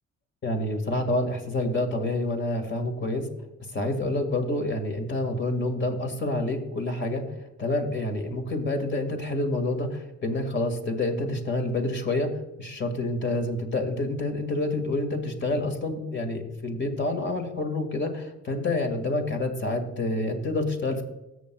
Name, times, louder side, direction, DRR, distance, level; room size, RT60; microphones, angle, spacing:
voice 1, 0.4-3.3 3.7-7.2 7.6-12.3 12.6-21.0, left 2 dB, 40° left, 5 dB, 2.1 m, -28 dB
13.5 x 8.0 x 2.3 m, 0.97 s
cardioid pair, 90°, 30 cm